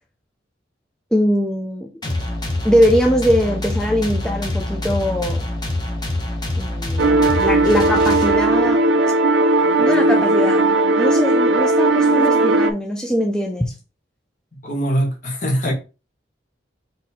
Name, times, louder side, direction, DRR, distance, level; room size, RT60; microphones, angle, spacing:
voice 1, 1.1-1.9 2.6-5.5 6.6-8.8 9.8-10.6 11.0-13.7, equal, 5° left, 0.4 m, -21 dB
sound 1, 2.0-8.7, left 1 dB, 25° left, 1.0 m, -25 dB
sound 2, 7.0-12.7, right 2 dB, 90° right, 0.5 m, -16 dB
voice 2, 14.6-15.7, equal, 45° left, 1.2 m, -22 dB
4.0 x 2.8 x 4.1 m
head